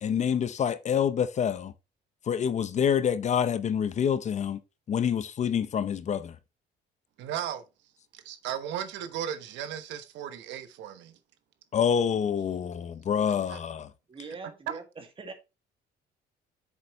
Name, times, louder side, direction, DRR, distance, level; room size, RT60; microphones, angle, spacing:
voice 1, 0.0-1.7 2.3-4.6 4.9-6.4 11.7-13.9, left 8 dB, 40° left, 0.7 m, -27 dB
voice 2, 7.2-7.6 8.1-11.2 13.5-13.6 14.7-14.8, right 10 dB, 90° right, 1.1 m, -35 dB
voice 3, 14.1-15.3, right 4 dB, 30° right, 2.1 m, -42 dB
8.1 x 7.1 x 3.1 m
cardioid pair, 130°, 18 cm